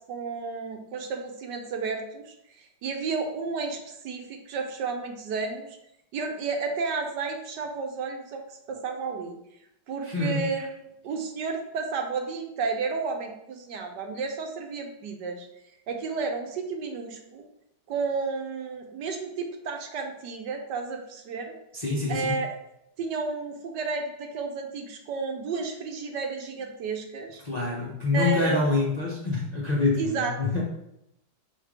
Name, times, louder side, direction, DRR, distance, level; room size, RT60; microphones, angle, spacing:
voice 1, 0.1-5.8 6.1-8.4 8.7-9.4 9.9-10.7 11.0-15.5 15.9-17.4 17.9-21.5 22.1-22.5 23.0-27.4 28.1-28.6 30.0-30.3, right 4 dB, 70° right, 4 dB, 1.3 m, -32 dB
voice 2, 10.0-10.4 21.7-22.4 27.4-30.6, left 3 dB, 35° left, -4 dB, 0.7 m, -26 dB
5.7 x 3.6 x 5.0 m, 0.82 s
omnidirectional pair, 2.0 m